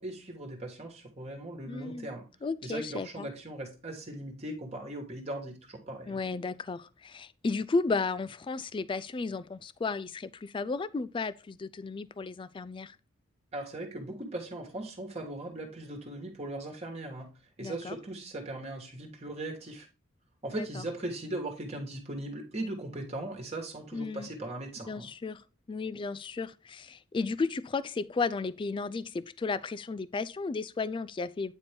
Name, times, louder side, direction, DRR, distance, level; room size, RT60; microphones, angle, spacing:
voice 1, 0.0-2.3 2.6-6.2 13.5-17.3 17.6-19.9 20.4-25.1, right 1 dB, 30° right, 1.4 m, -39 dB
voice 2, 1.7-2.1 2.4-3.3 6.1-13.0 17.6-18.0 20.6-20.8 23.9-24.3 24.9-31.5, left 4 dB, 25° left, 0.3 m, -34 dB
9.0 x 4.3 x 3.4 m
head